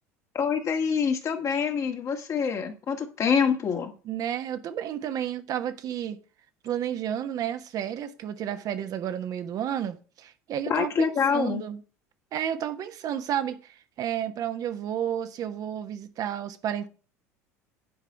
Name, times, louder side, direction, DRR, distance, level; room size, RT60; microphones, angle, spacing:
voice 1, 0.3-3.9 10.7-11.6, left 6 dB, 40° left, 1.7 m, -26 dB
voice 2, 4.0-6.2 6.6-11.8 12.3-16.9, right 10 dB, 45° right, 1.3 m, -31 dB
10.0 x 4.9 x 5.9 m
hypercardioid pair, 75°, 8 cm